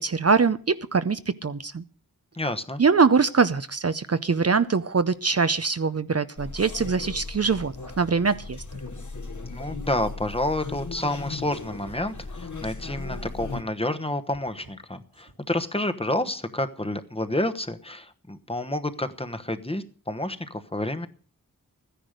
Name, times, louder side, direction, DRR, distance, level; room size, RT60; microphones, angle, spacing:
voice 1, 0.0-1.8 2.8-8.6, right 5 dB, 45° right, 12 dB, 0.6 m, -23 dB
voice 2, 2.4-2.8 9.5-21.1, left 1 dB, 15° left, 9 dB, 1.1 m, -29 dB
sound 1, 6.4-13.6, left 3 dB, 60° left, 1.7 m, -37 dB
sound 2, 7.6-7.9 8.2-8.3 8.6-10.5 10.8-11.1 11.3-14.7 15.1-15.5, right 2 dB, 85° right, 6.0 m, -54 dB
14.0 x 10.0 x 6.5 m, 0.41 s
wide cardioid pair, 65°, 34 cm